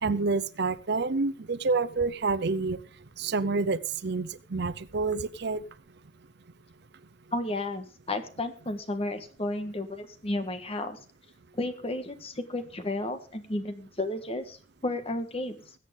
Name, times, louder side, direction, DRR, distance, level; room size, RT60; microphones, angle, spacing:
voice 1, 0.0-2.8 3.2-5.6, right 4 dB, 60° right, 16 dB, 0.6 m, -28 dB
voice 2, 7.3-11.0 11.5-14.6 14.8-15.6, left 2 dB, 30° left, 9 dB, 1.4 m, -32 dB
21.0 x 8.2 x 3.7 m, 0.37 s
head